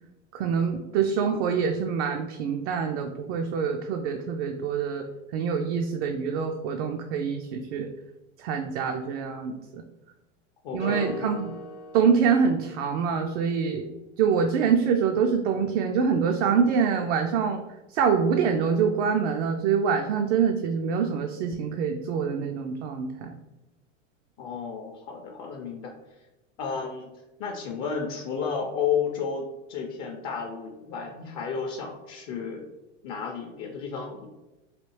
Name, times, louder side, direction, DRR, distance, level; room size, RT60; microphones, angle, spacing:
voice 1, 0.3-5.0 5.3-7.9 8.4-9.8 10.7-11.5 11.9-13.9 14.2-17.6 17.9-23.3, right 6 dB, 65° right, 4 dB, 0.5 m, -25 dB
voice 2, 10.6-11.5 24.4-25.9 26.6-27.1 27.4-32.6 33.0-34.3, left 6 dB, 45° left, 1 dB, 0.5 m, -32 dB
sound 1, 10.8-13.1, left 2 dB, 65° left, 0.9 m, -40 dB
3.3 x 2.3 x 3.1 m, 1.0 s
hypercardioid pair, 105°, 37 cm